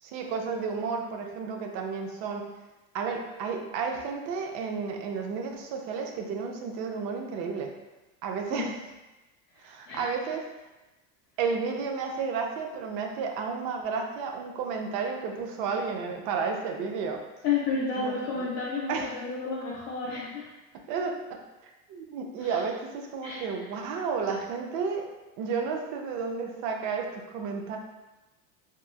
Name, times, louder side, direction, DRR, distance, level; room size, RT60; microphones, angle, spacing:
voice 1, 0.0-2.4 2.9-7.7 8.2-8.8 9.6-10.4 11.4-17.2 18.0-18.5 18.9-19.1 20.9-25.1 25.4-27.8, right 5 dB, 50° right, 3 dB, 0.4 m, -32 dB
voice 2, 17.4-20.5 22.4-22.5 23.2-23.5, left 5 dB, 35° left, -5 dB, 0.4 m, -31 dB
2.9 x 2.3 x 2.3 m, 1.1 s
supercardioid pair, 150°, 40 cm